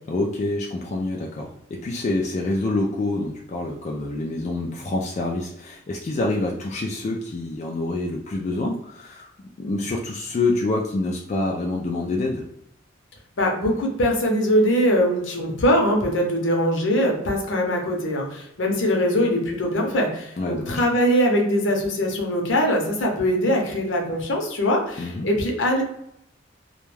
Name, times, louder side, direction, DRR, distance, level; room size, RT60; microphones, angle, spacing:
voice 1, 0.1-9.3 9.6-12.4 20.4-20.8 25.0-25.3, left 2 dB, 35° left, -1 dB, 0.3 m, -26 dB
voice 2, 13.4-25.8, equal, 70° left, 1 dB, 0.7 m, -22 dB
2.2 x 2.1 x 3.1 m, 0.78 s
head